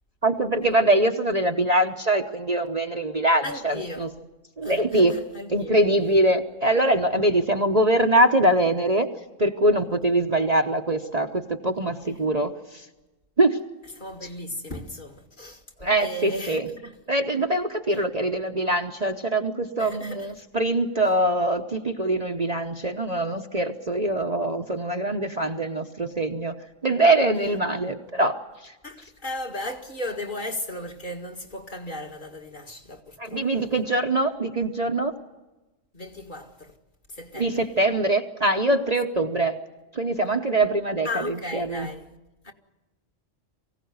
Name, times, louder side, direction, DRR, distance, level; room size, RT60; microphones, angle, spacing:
voice 1, 0.2-4.1 4.6-5.2 5.5-9.1 9.4-12.5 13.4-13.6 15.8-16.6 17.1-26.6 26.8-28.4 28.6-28.7 33.2-35.1 37.4-39.6 39.9-41.9, right 1 dB, 35° right, 1.0 m, -23 dB
voice 2, 3.4-4.1 4.6-6.2 12.1-12.2 14.0-15.6 16.0-17.0 19.8-20.3 28.8-33.9 35.9-36.8 37.1-37.6 41.0-42.2 42.4-42.5, left 1 dB, 40° left, 2.0 m, -36 dB
23.5 x 16.5 x 9.6 m
omnidirectional pair, 1.4 m